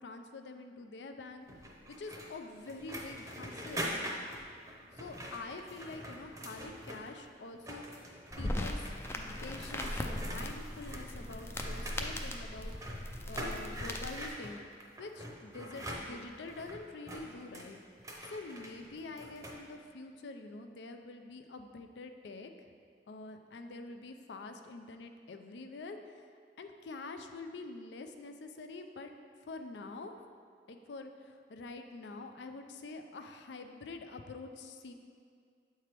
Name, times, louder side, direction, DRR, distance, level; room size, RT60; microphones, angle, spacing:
voice 1, 0.0-1.5 2.0-3.9 4.9-8.8 9.1-12.8 13.3-14.7 15.0-17.8 18.2-22.5 23.1-26.3 26.6-29.1 29.4-30.2 30.7-34.9, left 3 dB, 75° left, 6 dB, 0.4 m, -46 dB
sound 1, 1.5-7.3 7.5-19.6, equal, 20° right, 0.7 m, -44 dB
sound 2, 8.3-14.3, left 1 dB, 15° left, 0.4 m, -39 dB
7.6 x 4.5 x 3.3 m, 2.2 s
head